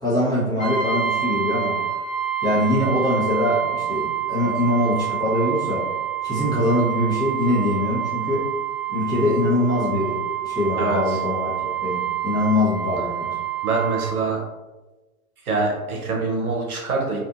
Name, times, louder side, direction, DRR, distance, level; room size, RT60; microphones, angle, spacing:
voice 1, 0.0-1.8 2.4-5.9 6.2-8.5 8.9-13.4, left 1 dB, 10° left, -9 dB, 0.9 m, -23 dB
Brass instrument, 0.6-14.2, right 10 dB, 60° left, 1.2 m, -27 dB
voice 2, 10.8-11.2 13.6-14.4 15.4-17.2, right 3 dB, 80° right, -1 dB, 0.9 m, -24 dB
2.6 x 2.5 x 2.4 m, 1.1 s
figure-of-eight pair, 110°, 44 cm